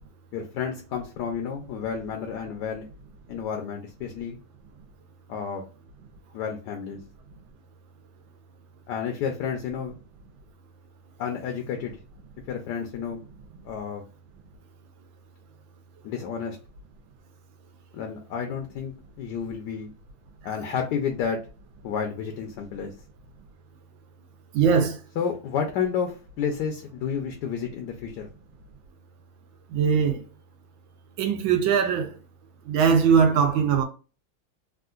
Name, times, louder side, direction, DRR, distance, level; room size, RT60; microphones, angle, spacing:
voice 1, 0.3-2.9 3.3-4.4 5.3-5.6 6.3-7.0 8.9-9.9 11.2-12.0 12.5-13.2 13.6-14.0 16.0-16.6 17.9-19.9 20.4-21.4 21.8-22.9 25.2-28.3, left 7 dB, 70° left, 1.1 m, -31 dB
voice 2, 24.5-25.0 29.7-30.2 31.2-32.2 32.7-33.8, right 6 dB, 75° right, 1.4 m, -21 dB
3.6 x 2.4 x 2.4 m
omnidirectional pair, 2.2 m